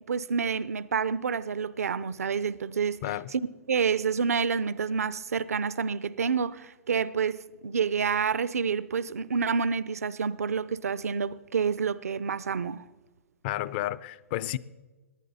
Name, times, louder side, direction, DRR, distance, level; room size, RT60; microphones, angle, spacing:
voice 1, 0.1-3.0 3.3-3.4 3.7-12.8, right 6 dB, 80° right, 0.5 m, -28 dB
voice 2, 13.4-14.6, left 14 dB, 45° left, 0.5 m, -31 dB
18.5 x 10.5 x 4.1 m
hypercardioid pair, 125°, 8 cm